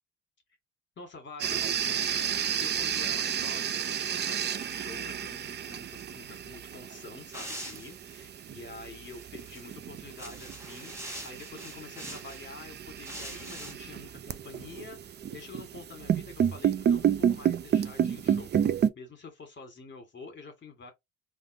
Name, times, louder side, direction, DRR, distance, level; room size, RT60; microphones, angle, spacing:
voice 1, 1.0-20.9, left 3 dB, 40° left, 1.5 m, -47 dB
sound 1, 1.4-18.9, right 9 dB, 35° right, 0.4 m, -31 dB
sound 2, 7.3-8.3 9.1-9.6 10.1-12.5 13.0-13.7, equal, 10° right, 1.3 m, -43 dB
3.5 x 2.6 x 2.6 m
cardioid pair, 90°, 30 cm